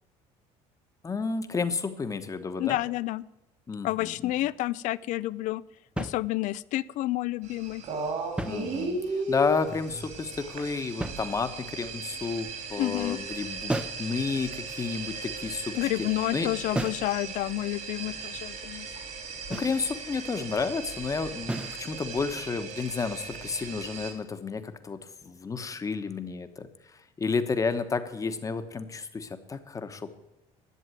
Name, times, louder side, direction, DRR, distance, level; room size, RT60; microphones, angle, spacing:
voice 1, 1.0-2.8 3.7-4.3 8.4-16.1 16.3-16.5 19.5-26.7 27.2-30.1, left 4 dB, 25° left, 9 dB, 1.2 m, -31 dB
voice 2, 2.6-3.2 3.8-5.6 6.0-7.8 12.8-13.2 15.7-18.9, left 17 dB, 65° left, 20 dB, 0.5 m, -29 dB
sound 1, 6.0-6.7 8.2-9.2 11.0-11.8 13.7-14.1 16.7-17.1 19.5-19.8 21.5-21.9, right 1 dB, 5° right, 0.8 m, -34 dB
sound 2, 7.4-24.1, right 2 dB, 60° right, 3.7 m, -37 dB
11.0 x 7.5 x 9.2 m, 0.98 s
cardioid pair, 110°, 14 cm